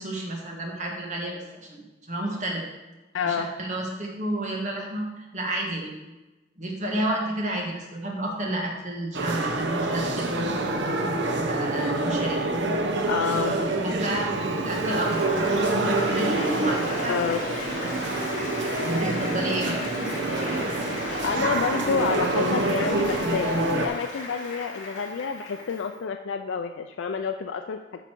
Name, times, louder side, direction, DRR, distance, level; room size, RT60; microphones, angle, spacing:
voice 1, 0.0-2.6 3.2-5.9 6.6-10.4 11.4-12.5 13.3-13.4 13.8-14.3 14.6-15.3 15.9-17.2 18.8-19.8 21.4-21.5, right 1 dB, 40° right, -1 dB, 1.5 m, -31 dB
voice 2, 3.1-3.5 13.1-13.5 17.1-17.4 21.2-23.5 23.7-28.0, left 6 dB, 85° left, 6 dB, 0.4 m, -28 dB
sound 1, 9.1-23.9, right 2 dB, 70° right, 0.8 m, -26 dB
Applause, 14.4-25.9, left 2 dB, 40° left, 2.7 m, -37 dB
9.1 x 5.7 x 4.5 m, 1.1 s
head